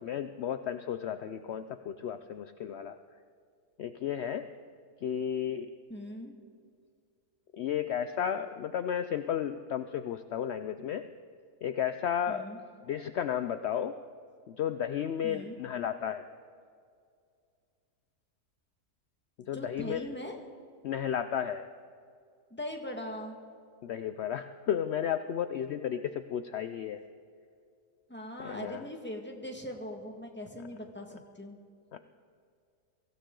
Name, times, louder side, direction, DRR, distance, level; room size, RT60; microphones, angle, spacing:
voice 1, 0.0-3.0 3.8-4.5 5.0-5.7 7.5-11.1 11.6-12.5 12.8-14.0 14.5-16.3 19.5-20.2 20.8-21.7 23.8-27.0 28.4-28.9 31.9-32.0, left 9 dB, 75° left, 10 dB, 0.6 m, -33 dB
voice 2, 5.9-6.3 12.3-12.6 15.2-15.6 19.5-20.4 22.5-23.4 28.1-31.6, equal, 5° left, 2 dB, 1.5 m, -40 dB
23.5 x 15.5 x 3.8 m, 2.2 s
omnidirectional pair, 1.7 m